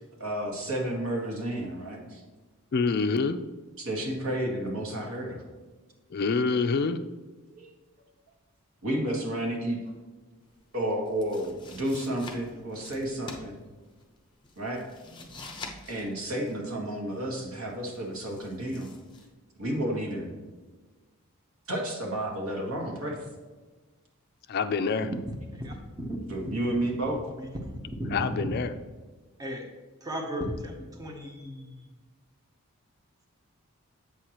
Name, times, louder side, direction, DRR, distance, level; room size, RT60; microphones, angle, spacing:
voice 1, 0.2-2.2 3.8-5.4 7.5-7.7 8.8-9.8 10.7-13.6 14.6-14.8 15.9-18.9 19.6-20.3 21.7-23.2 26.3-27.2, right 1 dB, 70° right, 0 dB, 1.6 m, -31 dB
voice 2, 2.7-3.4 6.1-7.0 24.5-25.1 28.1-28.7, left 4 dB, 45° left, 10 dB, 0.3 m, -26 dB
sound 1, 10.4-19.3, left 3 dB, 20° left, 0.7 m, -47 dB
voice 3, 25.5-26.2 27.4-28.3 29.4-29.7 30.0-31.9, equal, 15° right, 1 dB, 0.8 m, -36 dB
8.0 x 6.4 x 2.9 m, 1.3 s
head